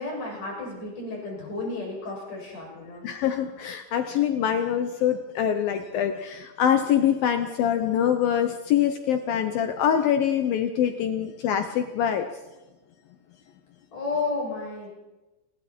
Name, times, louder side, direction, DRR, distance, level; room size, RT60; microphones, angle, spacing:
voice 1, 0.0-3.0 13.9-14.9, left 3 dB, 45° left, -2 dB, 8.6 m, -32 dB
voice 2, 3.0-12.3, left 9 dB, 75° left, 7 dB, 2.2 m, -24 dB
29.5 x 20.0 x 4.5 m, 1.1 s
omnidirectional pair, 5.2 m